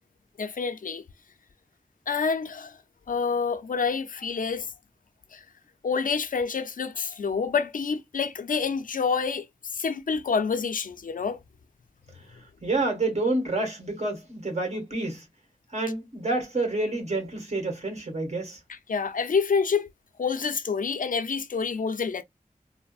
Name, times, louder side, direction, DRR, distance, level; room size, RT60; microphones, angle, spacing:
voice 1, 0.4-1.0 2.1-2.7 3.1-4.7 5.3-5.4 5.8-9.5 9.7-11.4 18.7-19.9 20.2-22.2, left 5 dB, 80° left, 0.4 m, -27 dB
voice 2, 12.6-15.2 15.7-18.6, right 2 dB, 55° right, 1.5 m, -28 dB
3.2 x 2.0 x 2.3 m
wide cardioid pair, 45°, 14 cm